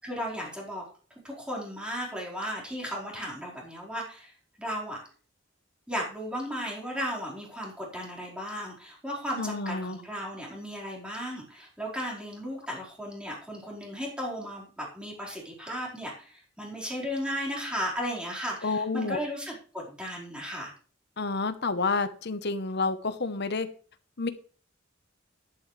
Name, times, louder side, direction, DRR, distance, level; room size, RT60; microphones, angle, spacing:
voice 1, 0.0-0.8 1.2-5.0 5.9-20.7, equal, 5° right, -3 dB, 4.6 m, -35 dB
voice 2, 9.4-10.0 18.6-19.2 21.2-23.7 24.2-24.3, left 3 dB, 60° left, 11 dB, 1.0 m, -29 dB
11.5 x 11.5 x 3.3 m, 0.41 s
head